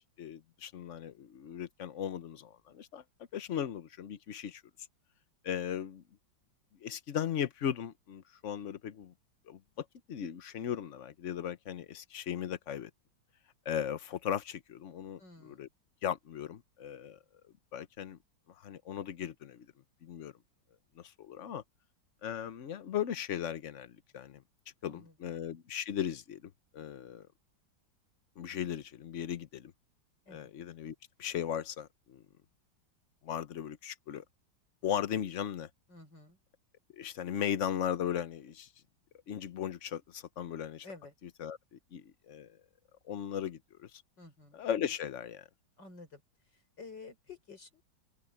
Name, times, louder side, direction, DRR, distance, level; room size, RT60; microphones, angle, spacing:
voice 1, 0.2-3.0 3.3-4.6 5.4-6.0 6.8-9.1 9.5-12.9 13.6-15.7 16.0-17.2 17.7-18.2 18.5-19.7 20.0-20.3 20.9-21.6 22.2-24.4 24.8-27.3 28.4-29.7 30.3-32.2 33.2-34.2 34.8-35.7 36.9-38.7 39.3-40.8 41.4-42.6 43.0-44.0 44.5-45.5, left 9 dB, 50° left, 1.0 m, -37 dB
voice 2, 15.2-15.7 24.8-25.3 30.2-30.5 35.9-36.4 40.8-41.1 44.2-44.6 45.8-47.8, left 4 dB, 65° left, 6.6 m, -52 dB
open air
omnidirectional pair, 2.0 m